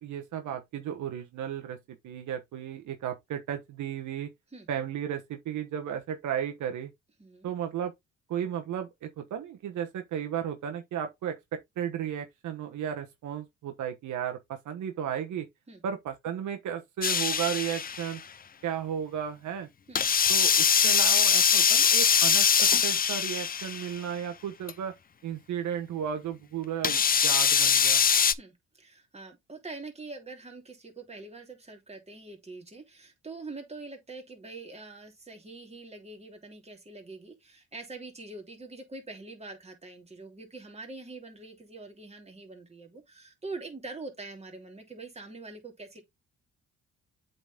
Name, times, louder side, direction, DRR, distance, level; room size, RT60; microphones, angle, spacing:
voice 1, 0.0-1.8 2.0-4.3 4.7-6.9 7.4-7.9 8.3-15.5 15.8-18.2 18.6-19.7 20.3-24.9 25.2-28.0, right 9 dB, 75° right, 1.2 m, -34 dB
voice 2, 7.2-7.5 15.7-15.8 19.9-20.0 28.3-46.0, right 3 dB, 20° right, 3.0 m, -44 dB
sound 1, 17.0-18.1 20.0-24.0 24.7-24.8 26.8-28.3, left 7 dB, 30° left, 0.5 m, -23 dB
7.9 x 4.1 x 3.6 m
cardioid pair, 90°, 30 cm